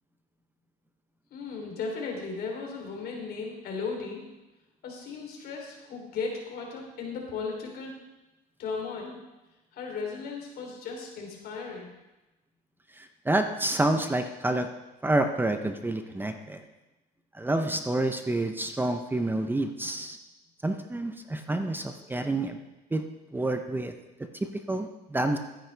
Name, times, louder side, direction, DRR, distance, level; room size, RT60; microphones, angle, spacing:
voice 1, 1.3-4.2 4.8-7.9 8.6-9.2 9.7-11.9, left 4 dB, 70° left, 0 dB, 3.3 m, -36 dB
voice 2, 13.0-14.7 15.0-16.6 17.4-20.2 20.6-22.6 22.9-23.1 23.3-23.9 24.4-25.4, right 2 dB, 10° right, 6 dB, 0.7 m, -28 dB
13.0 x 9.9 x 3.4 m, 1.1 s
cardioid pair, 110°, 17 cm